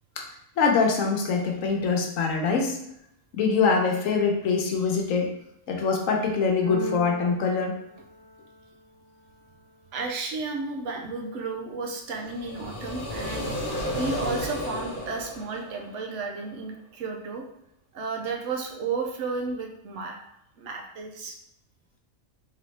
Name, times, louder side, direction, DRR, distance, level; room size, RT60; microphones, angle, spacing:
voice 1, 0.6-2.8 3.3-5.3 5.7-7.7, left 5 dB, 80° left, 1 dB, 1.1 m, -24 dB
Keyboard (musical), 6.6-8.7, equal, 20° left, 0.9 m, -37 dB
voice 2, 9.9-17.4 17.9-20.2 20.6-21.4, right 4 dB, 70° right, 2 dB, 0.9 m, -33 dB
sound 1, 12.2-16.2, equal, 45° left, 0.8 m, -33 dB
3.8 x 3.0 x 3.2 m, 0.78 s
omnidirectional pair, 1.4 m